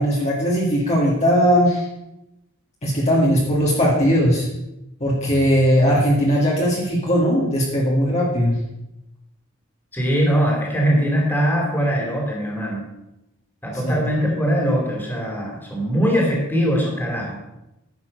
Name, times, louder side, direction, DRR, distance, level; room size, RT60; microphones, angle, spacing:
voice 1, 0.0-1.9 2.8-4.5 5.0-8.6 13.8-14.0, equal, 35° left, -4 dB, 2.0 m, -18 dB
voice 2, 9.9-12.8 13.6-17.3, equal, 10° left, -1 dB, 2.8 m, -21 dB
11.0 x 7.5 x 5.3 m, 0.90 s
head